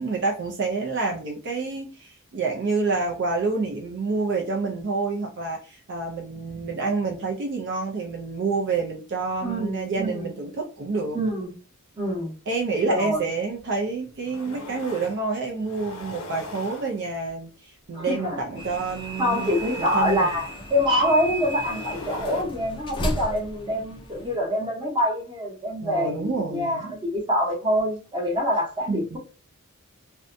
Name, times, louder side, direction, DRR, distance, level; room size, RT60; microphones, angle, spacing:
voice 1, 0.0-11.2 12.5-19.5 19.8-20.4 25.8-26.9 28.9-29.2, right 4 dB, 55° right, 0.5 m, -28 dB
voice 2, 9.4-10.3 11.1-11.5 12.0-12.4 12.9-13.2 17.9-18.4 19.2-29.2, equal, 20° right, 0.8 m, -25 dB
sound 1, 13.6-13.7 14.1-15.2 15.6-17.3 18.4-22.4, left 1 dB, 80° left, 0.7 m, -40 dB
sound 2, 18.6-24.4, equal, 20° left, 0.4 m, -34 dB
2.6 x 2.1 x 2.5 m
head